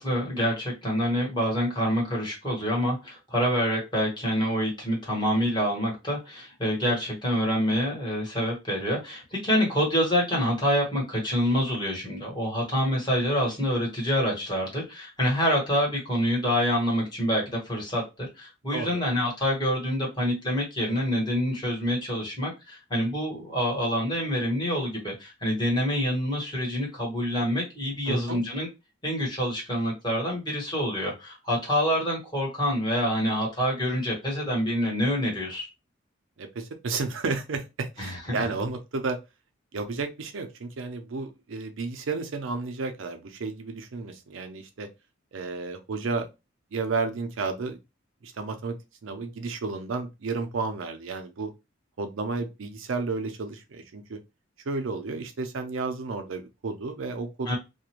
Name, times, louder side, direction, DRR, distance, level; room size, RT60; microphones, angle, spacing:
voice 1, 0.0-18.0 18.4-28.7 29.0-35.7 38.0-38.2 57.5-57.6, equal, 25° left, 1.2 m, -26 dB
voice 2, 18.7-19.0 28.1-28.4 36.4-39.2 39.7-44.9 45.3-46.3 46.7-47.8 48.2-48.8 49.0-51.5 52.0-54.2 54.7-57.6, right 4 dB, 80° right, 0.5 m, -32 dB
2.4 x 2.1 x 2.9 m
head